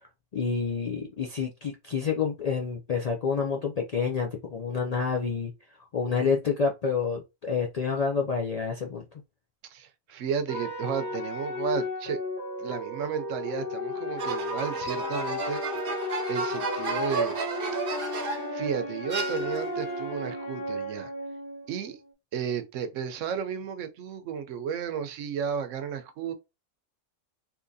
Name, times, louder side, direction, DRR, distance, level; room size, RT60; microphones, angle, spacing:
voice 1, 0.3-5.5 5.9-9.0, left 5 dB, 65° left, 0.4 m, -28 dB
voice 2, 9.7-12.2 12.6-15.6 16.3-17.4 18.5-21.1 21.7-22.0 22.3-26.3, right 7 dB, 85° right, 1.0 m, -33 dB
sound 1, 10.5-22.1, left 2 dB, 35° left, 1.3 m, -34 dB
sound 2, 14.2-18.6 19.1-19.9, right 4 dB, 55° right, 0.8 m, -33 dB
3.7 x 2.9 x 2.6 m
omnidirectional pair, 1.3 m